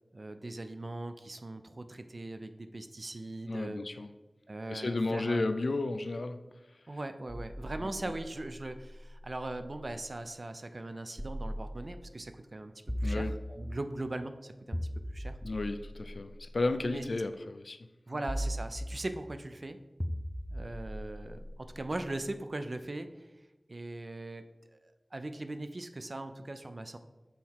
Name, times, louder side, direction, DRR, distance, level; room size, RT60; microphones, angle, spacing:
voice 1, 0.1-3.8 4.5-5.4 6.9-15.4 16.8-17.0 18.1-19.8 20.5-27.0, right 2 dB, 55° right, 9 dB, 0.4 m, -40 dB
voice 2, 3.5-4.1 4.7-6.5 13.0-13.3 15.4-17.8, left 2 dB, 85° left, 9 dB, 0.4 m, -33 dB
sound 1, 7.3-10.1 11.2-12.2 12.9-14.0 14.7-17.0 18.3-19.4 20.0-22.2, equal, 10° left, 0.5 m, -39 dB
5.7 x 4.1 x 4.6 m, 1.1 s
wide cardioid pair, 45°, 0 cm